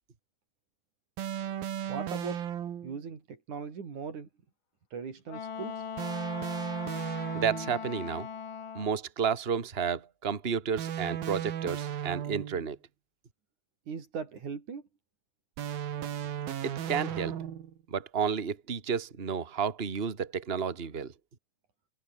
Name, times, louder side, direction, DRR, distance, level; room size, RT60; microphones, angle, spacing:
sound 1, 1.2-3.0 6.0-7.9 10.8-12.7 15.6-17.8, right 9 dB, 85° right, 4.1 m, -35 dB
voice 1, 1.9-2.4 2.8-4.3 4.9-5.9 13.9-14.8, right 6 dB, 55° right, 5.1 m, -39 dB
Wind instrument woodwind instrument, 5.3-9.0, left 7 dB, 65° left, 4.8 m, -39 dB
voice 2, 7.3-8.3 8.7-12.8 16.6-17.3 17.9-21.1, right 7 dB, 25° right, 1.5 m, -31 dB
omnidirectional pair, 4.1 m